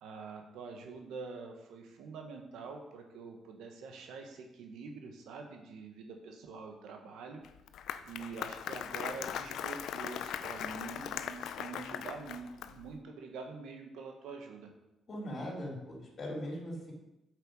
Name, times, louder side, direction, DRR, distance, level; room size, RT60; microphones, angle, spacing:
voice 1, 0.0-7.4 8.0-14.7, right 4 dB, 85° right, 3 dB, 1.4 m, -45 dB
Applause, 7.4-12.9, left 9 dB, 80° left, 0.5 m, -39 dB
voice 2, 15.1-16.9, equal, 45° left, -2 dB, 3.6 m, -40 dB
7.9 x 6.6 x 4.9 m, 0.93 s
cardioid pair, 90°, 0 cm